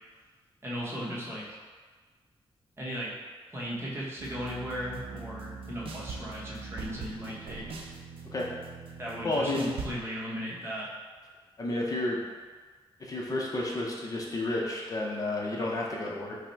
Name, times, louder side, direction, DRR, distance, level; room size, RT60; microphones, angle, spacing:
voice 1, 0.6-1.6 2.8-3.1 3.5-7.7 9.0-10.9, equal, 25° right, -5 dB, 0.9 m, -37 dB
sound 1, 4.2-10.0, right 4 dB, 70° right, 0.5 m, -42 dB
voice 2, 9.2-9.7 11.6-12.2 13.0-16.4, left 2 dB, 40° left, -3 dB, 0.6 m, -31 dB
5.6 x 2.0 x 4.4 m, 1.4 s
wide cardioid pair, 175°, 9 cm